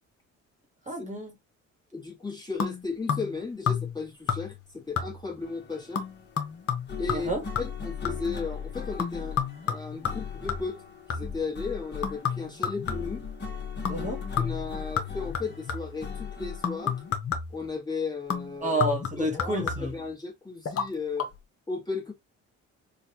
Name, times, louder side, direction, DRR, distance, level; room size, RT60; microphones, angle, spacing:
voice 1, 0.9-1.3 7.1-7.4 13.9-14.2 18.6-19.9, right 1 dB, 25° right, 1.2 m, -29 dB
voice 2, 1.9-6.0 7.0-7.3 7.6-9.4 9.6-10.8 11.1-13.3 14.4-17.0 17.5-18.8 19.1-21.3 21.7-22.1, left 4 dB, 15° left, 1.4 m, -35 dB
sound 1, 2.6-3.4 3.7-4.0 4.3-4.7 5.0-5.4 5.9-8.4 9.0-11.5 12.0-13.3 13.8-14.1 14.4-16.0 16.6-17.7 18.3-20.1 20.6-20.9 21.2-21.3, left 7 dB, 50° left, 1.0 m, -31 dB
sound 2, 5.4-17.1, left 6 dB, 35° left, 1.3 m, -39 dB
3.9 x 2.4 x 2.7 m
cardioid pair, 90°, 30 cm